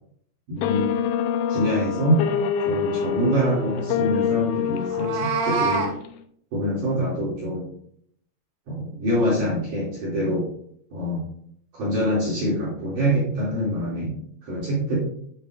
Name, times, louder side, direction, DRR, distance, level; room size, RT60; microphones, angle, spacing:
voice 1, 0.5-0.9 1.5-2.2 2.6-5.9 6.5-7.7 8.7-10.4 10.9-11.2 11.7-14.1 14.4-15.0, equal, 50° right, -7 dB, 3.6 m, -25 dB
sound 1, 0.6-6.1, left 8 dB, 90° left, 3.1 m, -26 dB
Meow, 4.8-5.9, right 5 dB, 80° right, 3.9 m, -25 dB
10.5 x 8.9 x 2.5 m, 0.67 s
omnidirectional pair, 5.1 m